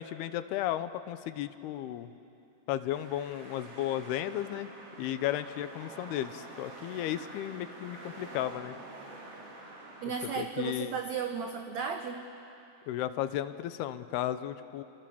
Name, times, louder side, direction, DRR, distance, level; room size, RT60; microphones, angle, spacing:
voice 1, 0.0-2.1 2.7-4.7 5.0-8.8 10.4-11.0 12.9-14.8, left 12 dB, 80° left, 12 dB, 2.8 m, -34 dB
sound 1, 2.9-10.4, right 2 dB, 40° right, 3.9 m, -47 dB
voice 2, 10.0-12.3, right 6 dB, 80° right, 5 dB, 1.6 m, -35 dB
28.5 x 27.0 x 7.1 m, 2.8 s
omnidirectional pair, 4.7 m